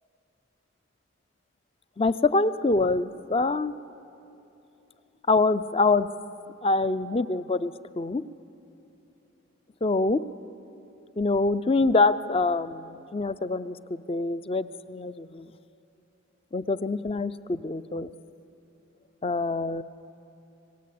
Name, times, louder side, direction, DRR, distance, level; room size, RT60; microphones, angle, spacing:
voice 1, 2.0-3.7 5.3-6.1 6.6-8.2 9.8-10.2 11.2-15.5 16.5-18.1 19.2-19.8, left 3 dB, 25° left, 14 dB, 0.5 m, -25 dB
27.0 x 18.5 x 8.5 m, 2.9 s
head